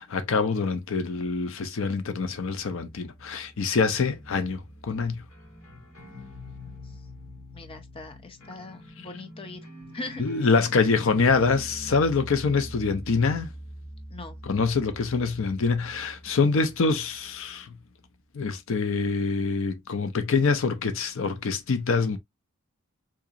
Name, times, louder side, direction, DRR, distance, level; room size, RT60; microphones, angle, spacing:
voice 1, 0.0-5.2 10.2-13.5 14.4-17.7 18.3-22.2, left 4 dB, 65° left, 0.5 m, -25 dB
sound 1, 2.2-17.6, equal, 80° left, 2.0 m, -44 dB
voice 2, 6.1-6.9 7.5-9.6 9.9-10.2 14.1-14.4, left 2 dB, 25° left, 0.7 m, -41 dB
3.8 x 2.8 x 2.5 m
head